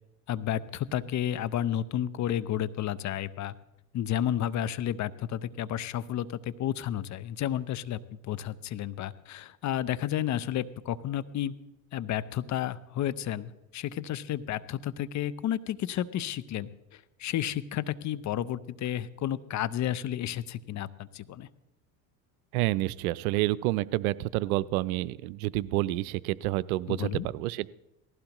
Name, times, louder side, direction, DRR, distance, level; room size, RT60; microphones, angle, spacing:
voice 1, 0.3-3.5 3.9-11.5 11.9-21.5 26.9-27.3, left 11 dB, 45° left, 16 dB, 0.7 m, -32 dB
voice 2, 22.5-27.7, right 17 dB, 90° right, 19 dB, 0.6 m, -29 dB
19.0 x 15.5 x 3.0 m, 0.93 s
supercardioid pair, 100°, 41 cm